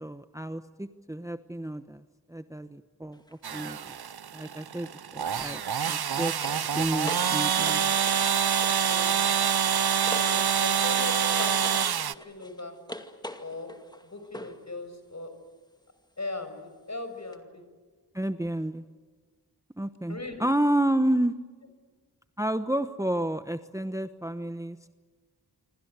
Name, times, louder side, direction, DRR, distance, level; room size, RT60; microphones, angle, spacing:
voice 1, 0.0-2.0 2.3-3.9 4.3-8.0 18.1-18.8 19.8-21.4 22.4-24.9, right 1 dB, 10° right, 10 dB, 1.0 m, -30 dB
sound 1, 3.1-3.4 5.7-10.6 10.9-14.7 17.3-17.4, left 1 dB, 10° left, 2.2 m, -44 dB
sound 2, 3.4-12.1, right 8 dB, 70° right, 0.7 m, -26 dB
voice 2, 8.8-9.3 10.2-12.7 13.4-13.7 14.0-15.3 16.2-17.6 20.1-20.5, left 2 dB, 45° left, 8 dB, 6.0 m, -39 dB
27.5 x 25.5 x 8.2 m, 1.5 s
wide cardioid pair, 70°, 39 cm